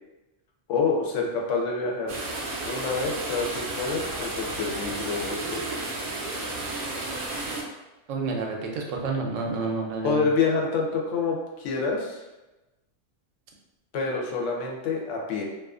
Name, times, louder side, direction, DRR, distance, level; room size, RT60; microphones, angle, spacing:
voice 1, 0.7-2.2 2.6-5.6 10.0-12.2 13.9-15.4, left 4 dB, 75° left, 0 dB, 0.9 m, -27 dB
sound 1, 2.1-7.6, right 2 dB, 60° right, 0.6 m, -32 dB
voice 2, 8.1-10.3, right 4 dB, 90° right, 0 dB, 0.9 m, -29 dB
2.4 x 2.3 x 2.4 m, 1.0 s
omnidirectional pair, 1.3 m